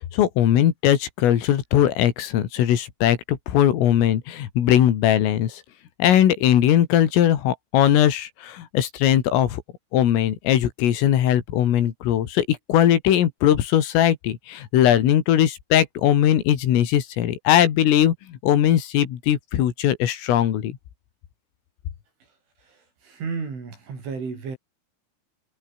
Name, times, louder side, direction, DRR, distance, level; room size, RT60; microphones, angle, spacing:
voice 1, 0.1-5.6 6.0-9.6 9.9-20.8, left 11 dB, 90° left, 5.1 m, -20 dB
voice 2, 22.7-24.6, right 5 dB, 70° right, 10.0 m, -33 dB
omnidirectional pair, 5.7 m